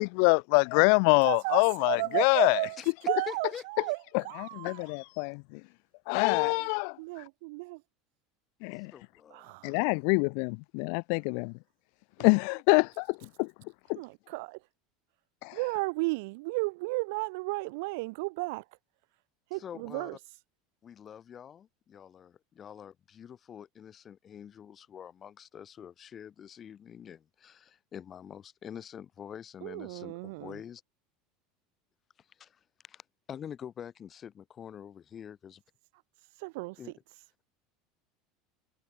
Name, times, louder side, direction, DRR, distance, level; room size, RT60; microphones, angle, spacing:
voice 1, 0.0-2.6 4.4-5.6 6.1-7.0 8.6-8.9 9.6-11.5 12.2-13.5 13.9-14.0 15.4-15.6, left 40 dB or more, 70° left, 0.6 m, -25 dB
voice 2, 1.2-4.9 6.2-6.7 7.0-7.8 9.3-9.8 12.2-12.3 14.0-14.6 15.5-18.6 19.5-20.2 29.6-30.6 36.4-36.8, right 26 dB, 70° right, 4.5 m, -34 dB
voice 3, 3.3-3.9 8.7-9.5 19.6-20.1 20.8-30.8 32.4-33.0 33.3-35.6 36.8-36.9, left 8 dB, 35° left, 3.2 m, -46 dB
hypercardioid pair, 95°, 0 cm